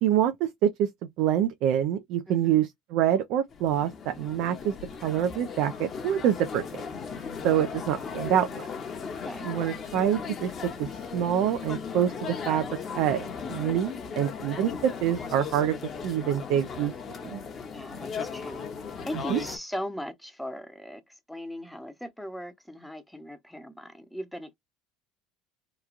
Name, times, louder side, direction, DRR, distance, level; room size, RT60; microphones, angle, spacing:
voice 1, 0.0-4.7 5.0-6.8 7.4-8.6 9.4-10.5 10.8-12.6 12.9-15.7 16.0-16.9 17.2-17.4 19.3-19.4, right 10 dB, 65° right, 0.5 m, -26 dB
voice 2, 2.3-2.6 9.0-9.5 17.7-18.7 19.0-24.5, equal, ahead, 0.7 m, -39 dB
sound 1, 3.5-19.6, left 6 dB, 40° left, 0.8 m, -37 dB
3.0 x 2.3 x 2.4 m
supercardioid pair, 100°, 0 cm